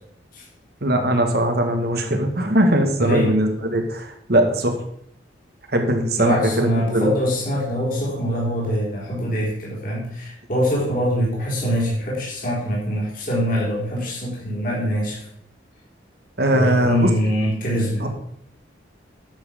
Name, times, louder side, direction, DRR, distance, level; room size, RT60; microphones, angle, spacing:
voice 1, 0.8-4.8 5.7-7.1 16.4-17.1 18.0-18.1, right 1 dB, 55° right, 5 dB, 1.8 m, -20 dB
voice 2, 3.0-3.3 6.2-15.2 16.5-18.1, equal, 45° left, -5 dB, 4.1 m, -23 dB
10.5 x 7.8 x 5.2 m, 0.70 s
head